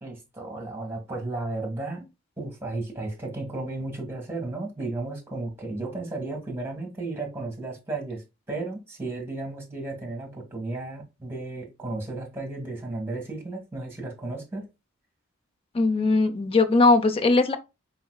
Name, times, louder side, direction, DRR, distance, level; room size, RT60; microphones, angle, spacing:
voice 1, 0.0-2.0 2.4-14.6, right 2 dB, 10° right, 1.6 m, -34 dB
voice 2, 15.7-17.6, left 3 dB, 30° left, 0.5 m, -20 dB
4.1 x 4.0 x 2.2 m
head